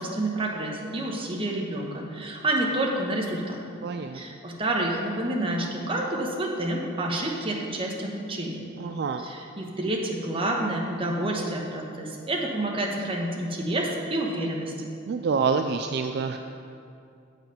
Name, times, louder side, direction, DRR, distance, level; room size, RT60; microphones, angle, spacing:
voice 1, 0.0-3.6 4.1-8.6 9.2-14.7, right 1 dB, 30° right, 0 dB, 1.2 m, -29 dB
voice 2, 3.8-4.2 8.8-9.2 15.1-16.4, right 5 dB, 55° right, 6 dB, 0.3 m, -27 dB
8.0 x 7.3 x 5.8 m, 2.5 s
head